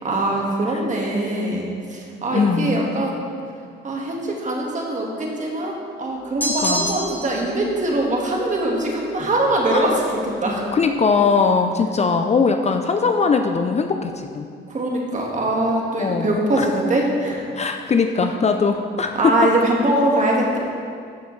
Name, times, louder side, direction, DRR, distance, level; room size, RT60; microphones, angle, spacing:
voice 1, 0.0-3.2 3.8-10.6 14.7-17.5 19.1-20.6, right 1 dB, 40° right, -1 dB, 1.7 m, -22 dB
voice 2, 2.3-2.8 6.6-7.0 9.7-9.9 10.7-14.5 16.0-16.7 17.5-19.4, left 5 dB, 35° left, 6 dB, 0.5 m, -20 dB
sound 1, 6.4-7.4, equal, 10° left, 1.0 m, -25 dB
13.5 x 5.8 x 3.2 m, 2.2 s
cardioid pair, 90°, 20 cm